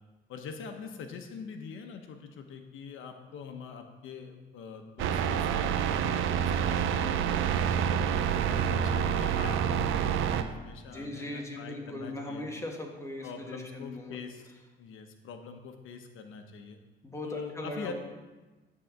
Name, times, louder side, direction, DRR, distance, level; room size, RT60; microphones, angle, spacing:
voice 1, 0.3-8.1 8.5-12.5 13.2-14.5 14.8-16.8 17.2-17.9, left 5 dB, 85° left, 5 dB, 1.1 m, -44 dB
sound 1, 5.0-10.4, right 8 dB, 85° right, 0.6 m, -27 dB
voice 2, 10.9-14.2 17.0-17.9, left 1 dB, 15° left, 0 dB, 1.9 m, -39 dB
10.0 x 4.2 x 7.4 m, 1.2 s
cardioid pair, 90°, 20 cm